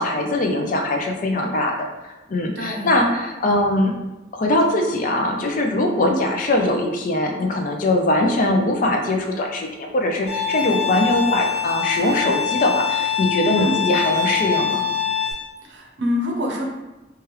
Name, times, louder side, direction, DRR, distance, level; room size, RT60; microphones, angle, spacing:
voice 1, 0.0-1.9 2.3-4.0 4.3-14.8, left 1 dB, 45° left, 2 dB, 0.4 m, -21 dB
voice 2, 2.5-3.0 6.0-6.2 13.5-13.8 15.6-16.6, left 1 dB, 75° right, 0 dB, 0.6 m, -26 dB
Bowed string instrument, 10.3-15.3, left 8 dB, 60° left, 1.0 m, -24 dB
3.1 x 2.3 x 3.0 m, 1.0 s
head